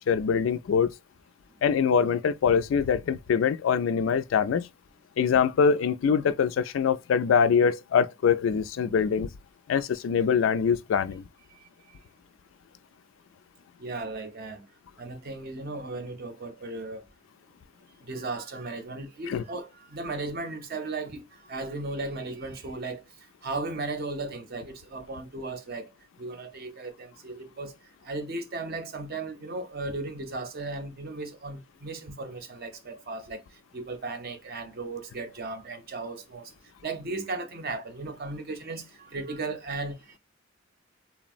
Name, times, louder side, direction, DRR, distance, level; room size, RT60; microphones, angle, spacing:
voice 1, 0.1-0.9 1.6-4.7 5.2-9.3 9.7-11.2 19.3-19.4, left 6 dB, 70° left, 0.3 m, -23 dB
voice 2, 11.6-12.0 13.8-14.7 15.0-17.1 18.0-23.0 23.4-25.9 26.2-27.7 28.0-36.5 36.8-40.2, right 3 dB, 55° right, 0.6 m, -36 dB
3.4 x 2.0 x 2.4 m
head